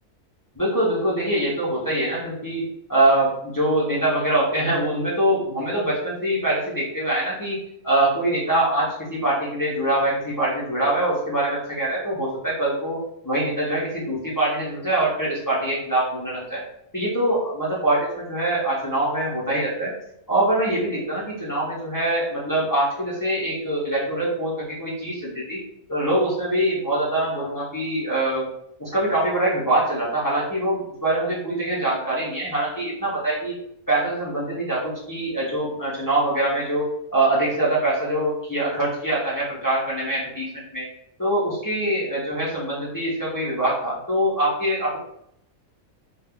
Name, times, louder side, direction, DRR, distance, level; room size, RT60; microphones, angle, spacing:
voice 1, 0.5-13.0 13.2-16.6 16.9-19.9 20.3-25.6 25.9-28.4 28.8-33.5 33.9-40.9 41.2-45.0, right 1 dB, 25° left, -7 dB, 0.4 m, -24 dB
2.4 x 2.2 x 3.5 m, 0.75 s
omnidirectional pair, 1.5 m